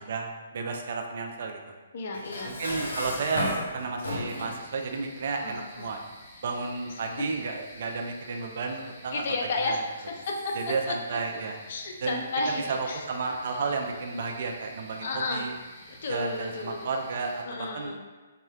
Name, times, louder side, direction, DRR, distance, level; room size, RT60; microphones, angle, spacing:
voice 1, 0.0-1.6 2.4-6.0 6.4-9.2 9.7-9.8 10.6-11.6 12.0-12.3 12.7-15.5 16.1-17.9, right 4 dB, 50° right, 3 dB, 0.4 m, -32 dB
voice 2, 1.9-2.6 5.4-5.9 9.1-10.6 10.9-11.0 11.7-13.4 15.0-15.5 15.9-16.8 17.4-18.0, left 3 dB, 50° left, 1 dB, 0.4 m, -32 dB
Dishes pots and pans, 2.1-4.6, equal, 70° left, 0.9 m, -33 dB
sound 1, 4.0-17.4, equal, 15° left, 0.9 m, -51 dB
4.2 x 2.1 x 2.2 m, 1.3 s
figure-of-eight pair, 130°, 0 cm